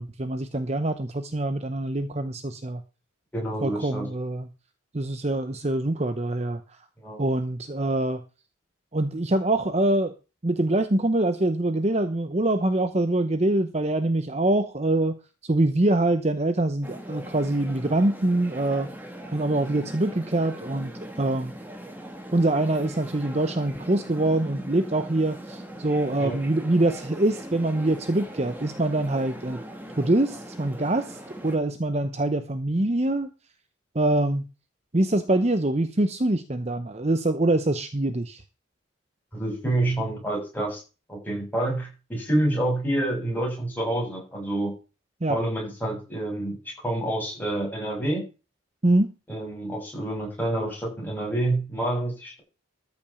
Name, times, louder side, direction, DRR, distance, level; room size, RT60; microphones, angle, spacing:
voice 1, 0.0-2.8 3.6-4.5 4.9-6.6 7.2-8.2 8.9-10.1 10.4-15.2 15.4-18.9 19.3-20.9 21.2-21.5 22.3-29.6 30.0-33.3 33.9-34.4 34.9-38.4 45.2-45.4 48.8-49.1, right 2 dB, 30° right, 10 dB, 0.8 m, -24 dB
voice 2, 3.3-4.1 7.0-7.2 26.2-26.4 39.3-40.8 41.1-44.7 45.3-48.2 49.3-52.4, right 1 dB, 10° left, -2 dB, 6.9 m, -28 dB
sound 1, 16.8-31.6, equal, 10° right, 2.0 m, -40 dB
13.5 x 5.3 x 7.1 m, 0.32 s
head